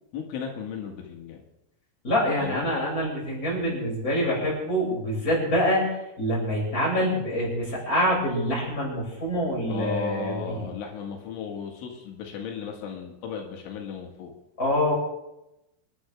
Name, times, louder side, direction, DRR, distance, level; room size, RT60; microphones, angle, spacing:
voice 1, 0.1-1.4 2.4-2.7 9.7-14.3, left 6 dB, 90° left, 1 dB, 4.4 m, -35 dB
voice 2, 2.0-10.7 14.6-14.9, equal, 15° left, -5 dB, 7.5 m, -26 dB
27.0 x 11.5 x 3.6 m, 0.91 s
omnidirectional pair, 5.4 m